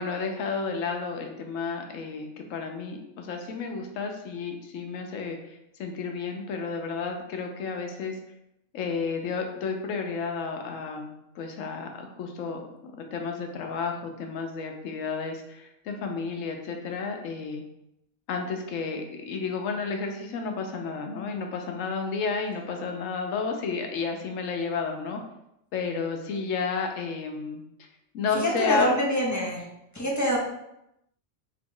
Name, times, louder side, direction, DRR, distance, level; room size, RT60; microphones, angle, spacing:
voice 1, 0.0-8.2 8.7-12.7 13.1-17.6 18.3-25.2 25.7-27.9 28.1-28.9, left 5 dB, 85° left, 3 dB, 1.0 m, -32 dB
voice 2, 28.3-29.6 29.9-30.4, equal, 20° left, -3 dB, 0.4 m, -25 dB
3.0 x 2.9 x 3.7 m, 0.84 s
omnidirectional pair, 1.3 m